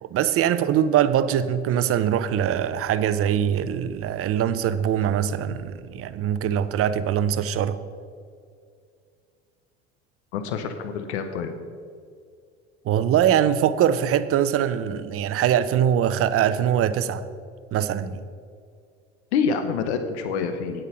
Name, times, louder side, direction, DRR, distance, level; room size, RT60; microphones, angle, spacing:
voice 1, 0.0-7.8 12.8-17.3 17.7-18.2, right 9 dB, 40° right, 14 dB, 0.7 m, -22 dB
voice 2, 10.3-11.5 19.3-20.8, left 6 dB, 75° left, 8 dB, 0.9 m, -26 dB
9.1 x 8.2 x 5.6 m, 2.3 s
hypercardioid pair, 80°, 33 cm